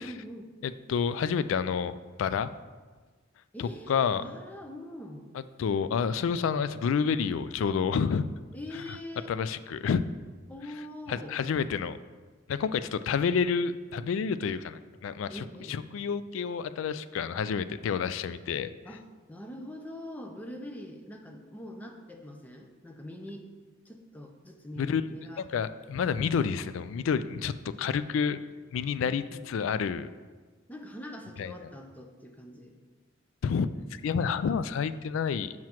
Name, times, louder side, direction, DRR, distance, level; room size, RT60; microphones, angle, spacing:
voice 1, 0.0-0.5 3.5-5.3 8.5-9.3 10.5-11.4 15.3-15.8 18.8-23.5 23.8-25.4 29.0-29.5 30.7-32.8, left 1 dB, 10° left, 3 dB, 0.6 m, -43 dB
voice 2, 0.6-1.9 2.2-2.5 3.6-4.2 5.6-8.2 8.7-9.0 9.3-10.0 11.1-12.0 12.5-18.7 24.8-25.0 25.4-27.5 27.8-28.4 28.7-30.1 31.4-31.5 33.4-33.7 34.0-35.5, left 6 dB, 85° left, 13 dB, 0.3 m, -29 dB
7.4 x 6.0 x 3.0 m, 1.4 s
head